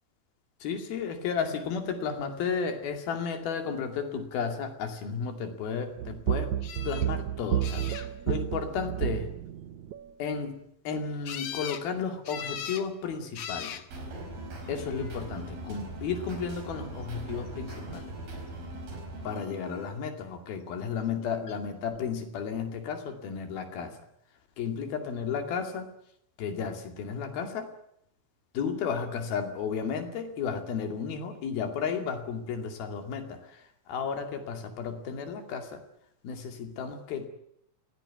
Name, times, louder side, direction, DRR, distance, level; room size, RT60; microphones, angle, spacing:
voice 1, 0.6-6.5 6.8-8.0 8.3-9.3 10.2-13.8 14.7-18.1 19.2-24.0 24.6-25.9 26.4-27.7 28.5-33.6 33.9-35.8 36.2-37.3, left 6 dB, 80° left, 5 dB, 4.4 m, -33 dB
sound 1, 6.0-10.1, right 11 dB, 65° right, 2.1 m, -31 dB
sound 2, 6.6-7.1 7.6-8.3 11.2-11.9 12.3-12.9 13.3-13.9 14.8-15.3 21.5-21.6 21.9-22.0, left 8 dB, 60° left, 1.5 m, -39 dB
sound 3, 13.9-19.9, right 1 dB, 80° right, 6.9 m, -40 dB
24.5 x 17.0 x 9.4 m, 0.75 s
omnidirectional pair, 4.2 m